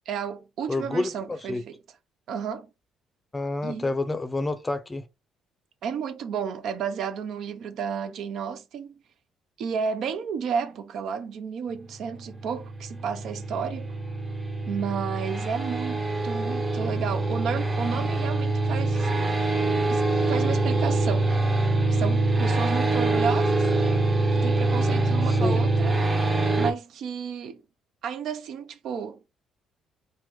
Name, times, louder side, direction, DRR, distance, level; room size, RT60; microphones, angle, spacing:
voice 1, 0.1-1.8 2.3-2.7 3.6-3.9 5.8-9.0 9.6-13.9 14.7-19.1 19.9-21.3 21.9-23.6 24.3-26.0 26.5-27.6 28.0-29.2, right 6 dB, 70° right, 0.5 m, -32 dB
voice 2, 0.7-1.6 3.3-5.1 25.3-25.6, left 2 dB, 20° left, 0.5 m, -29 dB
sound 1, 11.9-26.7, right 2 dB, 25° right, 0.7 m, -25 dB
3.0 x 2.1 x 3.5 m
cardioid pair, 95°, 0 cm